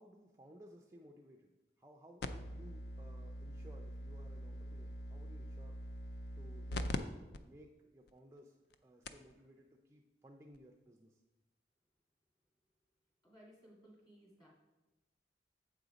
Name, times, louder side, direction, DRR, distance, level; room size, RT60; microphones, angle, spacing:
voice 1, 0.0-5.8 6.4-7.0 7.4-11.2, right 1 dB, 15° right, 1 dB, 0.4 m, -59 dB
sound 1, 2.2-7.0 7.3-7.4 8.1-8.2 8.7-8.8 9.1-9.3 10.5-10.6, left 1 dB, 60° left, 0.4 m, -43 dB
voice 2, 13.2-14.5, equal, 20° left, -3 dB, 2.0 m, -60 dB
7.8 x 3.9 x 4.9 m, 1.1 s
head